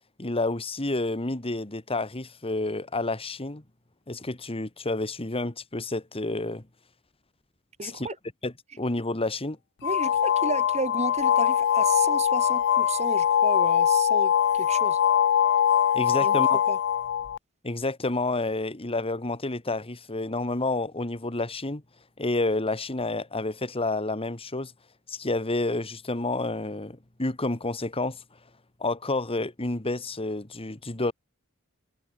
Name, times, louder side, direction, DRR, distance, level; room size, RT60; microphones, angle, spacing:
voice 1, 0.2-3.6 4.1-6.6 7.8-8.1 8.4-9.6 15.9-16.6 17.6-21.8 22.2-24.7 25.1-28.2 28.8-31.1, left 2 dB, 25° left, 1.8 m, -29 dB
voice 2, 7.8-8.2 9.8-15.0 16.2-16.8, right 3 dB, 30° right, 1.3 m, -33 dB
sound 1, 9.8-17.4, left 9 dB, 55° left, 0.4 m, -22 dB
head